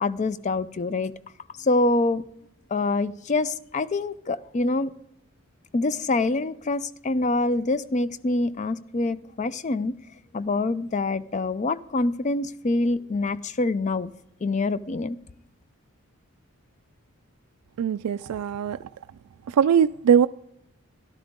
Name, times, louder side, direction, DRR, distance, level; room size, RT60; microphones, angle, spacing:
voice 1, 0.0-1.1 1.6-2.2 2.7-4.9 5.7-9.9 10.3-14.1 14.4-15.2, left 2 dB, 30° left, 0.4 m, -25 dB
voice 2, 17.8-18.8 19.5-20.3, right 8 dB, 80° right, 0.3 m, -21 dB
13.5 x 12.0 x 3.6 m
head